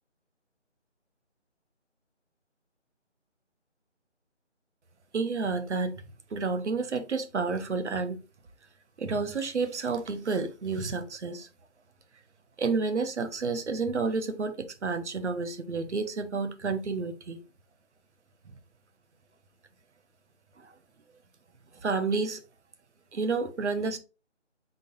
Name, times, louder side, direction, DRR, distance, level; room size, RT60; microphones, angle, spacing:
voice 1, 5.1-5.9 6.3-8.2 9.0-11.5 12.6-17.4 20.6-20.7 21.8-22.4 23.1-24.0, right 4 dB, 70° right, 0.8 m, -30 dB
3.8 x 2.6 x 3.7 m
figure-of-eight pair, 165°, 36 cm